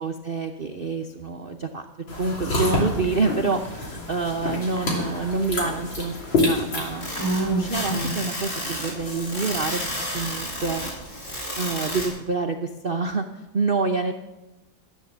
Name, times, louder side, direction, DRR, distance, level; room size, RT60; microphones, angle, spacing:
voice 1, 0.0-1.8 2.2-7.1 7.6-9.8 10.1-10.8 11.6-14.1, right 4 dB, 60° right, 4 dB, 0.6 m, -27 dB
sound 1, 2.1-7.7, left 2 dB, 90° left, 3.6 m, -28 dB
Whispering, 2.5-3.2 3.5-3.6 4.8-5.6 6.2-6.3 7.1-8.3, right 2 dB, 10° left, 2.6 m, -29 dB
sound 2, 7.0-12.1, equal, 45° left, 5.2 m, -31 dB
14.0 x 9.7 x 7.2 m, 1.1 s
omnidirectional pair, 2.1 m